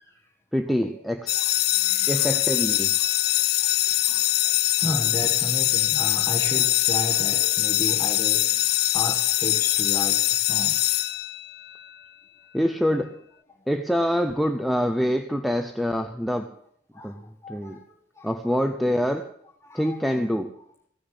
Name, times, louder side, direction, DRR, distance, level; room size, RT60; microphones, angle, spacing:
voice 1, 0.0-0.3 0.7-1.0 1.3-2.5 3.0-3.7 4.0-10.9 13.6-13.7 16.9-18.6 19.6-20.2 20.6-20.9, left 1 dB, 15° left, -3 dB, 1.5 m, -35 dB
voice 2, 0.5-1.4 2.1-2.9 12.5-13.2 13.7-16.5 17.0-17.2 17.5-17.8 18.2-19.3 19.7-20.5, equal, ahead, 6 dB, 0.6 m, -25 dB
sound 1, 1.3-11.7, left 15 dB, 55° left, 0.5 m, -23 dB
16.0 x 6.9 x 9.7 m, 0.67 s
head